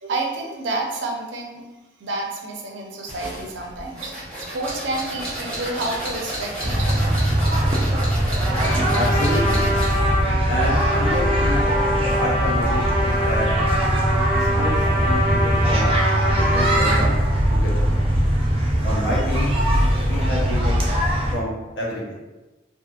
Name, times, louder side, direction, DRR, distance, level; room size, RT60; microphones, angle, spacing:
voice 1, 0.0-1.6 2.0-4.1 4.5-7.2, right 2 dB, 85° right, 1 dB, 0.5 m, -29 dB
sound 1, 3.1-10.1, right 1 dB, 5° left, 0.8 m, -32 dB
sound 2, 6.6-21.3, right 1 dB, 30° right, 0.4 m, -21 dB
Trumpet, 8.4-16.9, equal, 25° left, 1.3 m, -25 dB
voice 2, 8.9-9.6 10.5-11.6 12.2-13.5 14.4-15.9 16.2-17.2 17.5-17.8 18.8-19.5 20.0-20.8 21.3-22.1, equal, 85° left, -4 dB, 0.8 m, -28 dB
2.7 x 2.4 x 2.4 m, 1.1 s
head